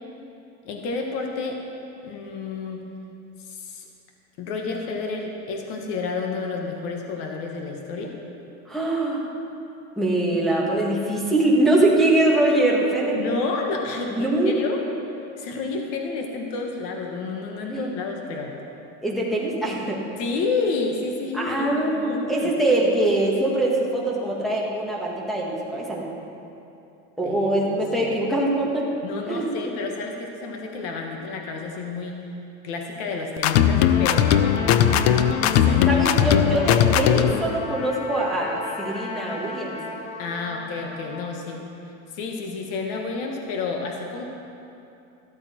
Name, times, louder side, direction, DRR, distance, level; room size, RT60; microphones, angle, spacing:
voice 1, 0.6-1.6 2.0-2.8 3.4-3.8 4.4-8.2 13.1-14.8 15.4-18.5 20.2-22.5 27.2-27.7 28.0-28.1 29.0-32.2 32.6-34.9 35.4-36.4 40.2-41.6 42.1-44.2, left 4 dB, 50° left, 2 dB, 1.4 m, -30 dB
voice 2, 8.7-9.2 10.0-13.2 14.1-14.5 17.7-17.9 19.0-20.0 21.3-26.0 27.2-28.9 29.3-29.5 35.6-39.8, right 1 dB, ahead, -3 dB, 1.5 m, -23 dB
sound 1, 33.4-37.4, left 9 dB, 65° left, 0.7 m, -18 dB
Trumpet, 33.9-41.2, left 2 dB, 20° left, 0.9 m, -37 dB
14.0 x 13.5 x 4.4 m, 2.8 s
cardioid pair, 175°, 34 cm